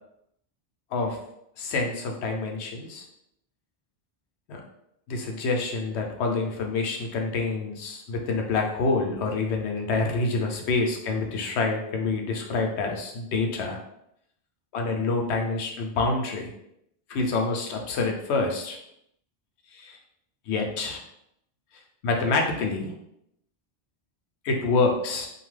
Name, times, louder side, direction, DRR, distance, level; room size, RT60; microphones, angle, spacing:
voice 1, 1.6-3.1 4.5-4.6 5.1-13.8 14.7-16.5 17.1-18.8 19.7-20.0 20.5-21.0 22.0-22.9 24.4-25.3, left 3 dB, 85° left, 2 dB, 0.9 m, -27 dB
2.6 x 2.3 x 3.1 m, 0.78 s
omnidirectional pair, 1.1 m